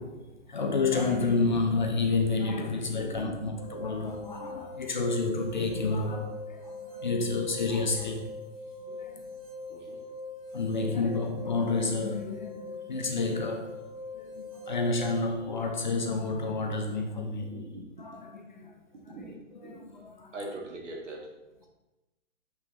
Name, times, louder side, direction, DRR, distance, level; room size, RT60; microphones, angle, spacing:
voice 1, 0.0-8.4 8.9-9.3 10.5-13.8 14.1-17.6 18.0-18.7 19.0-20.4, left 3 dB, 35° left, 3 dB, 0.5 m, -30 dB
voice 2, 3.0-3.4 9.7-10.0 10.9-11.0 17.5-17.8 19.1-19.4 19.6-19.8 20.3-21.3, right 2 dB, 65° right, 0 dB, 1.9 m, -41 dB
sound 1, 3.6-15.3, left 2 dB, 30° right, 0.8 m, -42 dB
6.6 x 5.7 x 3.0 m, 1.0 s
hypercardioid pair, 170°, 39 cm